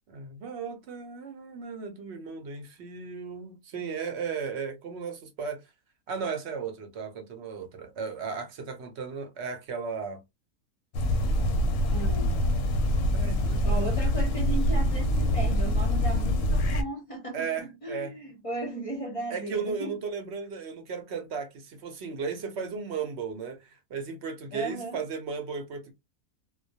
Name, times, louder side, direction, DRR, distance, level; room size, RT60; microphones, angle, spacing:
voice 1, 0.1-5.6 6.1-10.2 13.1-13.9 17.3-18.1 19.3-25.9, right 5 dB, 60° right, 0.8 m, -35 dB
sound 1, 10.9-16.8, left 1 dB, 70° left, 0.9 m, -25 dB
voice 2, 11.9-12.4 13.6-19.9 24.5-25.0, right 2 dB, 35° left, 0.6 m, -36 dB
2.2 x 2.2 x 2.7 m
omnidirectional pair, 1.5 m